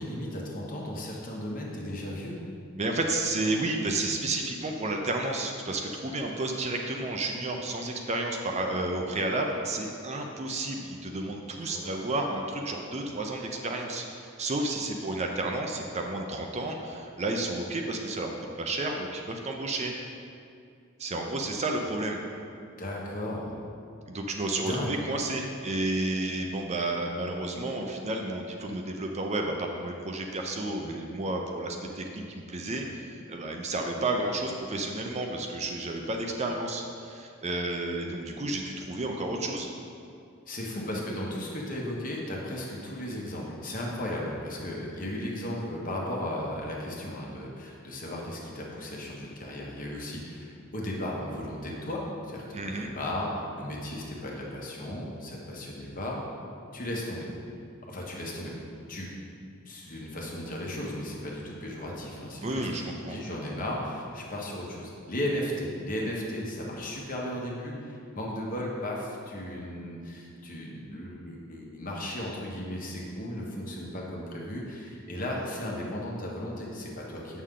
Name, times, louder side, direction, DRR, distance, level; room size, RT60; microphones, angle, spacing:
voice 1, 0.0-2.4 11.6-12.0 22.8-23.6 24.6-25.0 40.5-56.2 56.7-57.3 57.9-58.5 58.9-59.1 59.6-77.4, left 1 dB, 40° left, -2 dB, 1.2 m, -35 dB
voice 2, 2.8-19.9 21.0-22.2 24.1-39.7 52.5-52.9 62.4-63.2, right 2 dB, 30° right, 2 dB, 0.5 m, -31 dB
7.9 x 6.5 x 3.8 m, 2.4 s
head